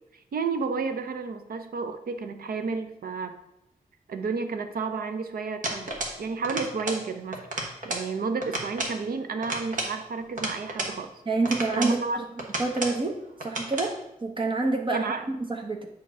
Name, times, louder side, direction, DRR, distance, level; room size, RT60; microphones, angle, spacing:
voice 1, 0.3-3.4 4.1-7.5 7.8-11.1 11.8-12.3 14.9-15.3, right 4 dB, 85° right, 8 dB, 0.7 m, -31 dB
sound 1, 5.6-6.2 6.4-7.1 7.3-8.1 8.4-9.0 9.4-11.0 11.4-12.0 12.4-13.0 13.4-13.9, right 2 dB, 60° right, 1.3 m, -32 dB
voice 2, 11.3-12.0 12.6-13.2 13.4-15.9, right 3 dB, 35° right, 3 dB, 0.8 m, -27 dB
8.6 x 3.0 x 5.9 m, 0.86 s
wide cardioid pair, 135°, 15 cm